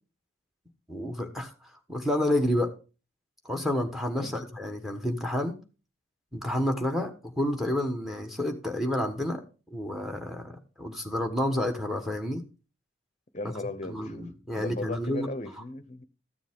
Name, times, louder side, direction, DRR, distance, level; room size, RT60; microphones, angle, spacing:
voice 1, 0.9-1.5 1.9-2.7 3.4-5.6 6.3-9.4 9.7-12.4 13.9-15.3, left 1 dB, ahead, 1.2 m, -29 dB
voice 2, 13.3-14.3 14.6-16.1, left 2 dB, 35° left, 0.7 m, -37 dB
13.0 x 7.2 x 3.6 m
head